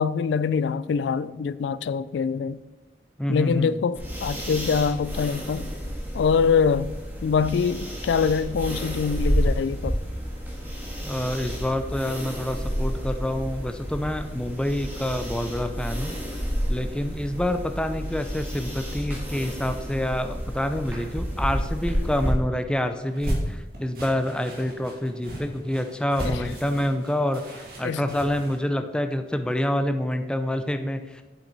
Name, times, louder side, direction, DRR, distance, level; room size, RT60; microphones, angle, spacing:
voice 1, 0.0-2.6 3.3-5.7 6.1-6.9 7.2-10.0 26.2-26.5 27.8-28.1, left 6 dB, 90° left, 0.3 m, -24 dB
voice 2, 3.2-3.8 11.0-16.2 16.7-27.4 27.8-31.2, left 1 dB, 5° left, 0.4 m, -27 dB
sound 1, 3.9-22.3, equal, 10° right, 1.6 m, -30 dB
sound 2, 23.0-28.6, right 1 dB, 55° right, 2.4 m, -34 dB
8.2 x 7.3 x 4.0 m
head